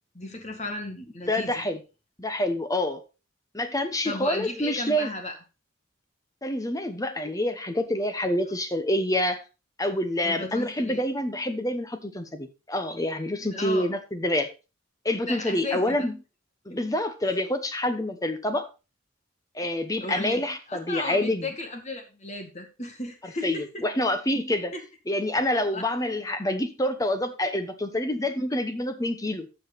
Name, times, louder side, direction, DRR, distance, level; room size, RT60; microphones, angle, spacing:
voice 1, 0.1-1.6 4.0-5.4 10.2-11.0 13.5-13.9 15.3-16.0 17.3-17.4 20.0-23.8 24.7-24.8 25.5-25.9, left 2 dB, 30° left, 4 dB, 2.1 m, -35 dB
voice 2, 1.3-1.8 2.2-3.0 3.5-5.1 6.4-9.4 9.8-14.5 15.0-16.1 16.7-18.7 19.5-21.5 23.4-24.7 25.1-29.5, left 1 dB, 15° left, 9 dB, 1.0 m, -27 dB
12.0 x 6.4 x 4.1 m, 0.30 s
head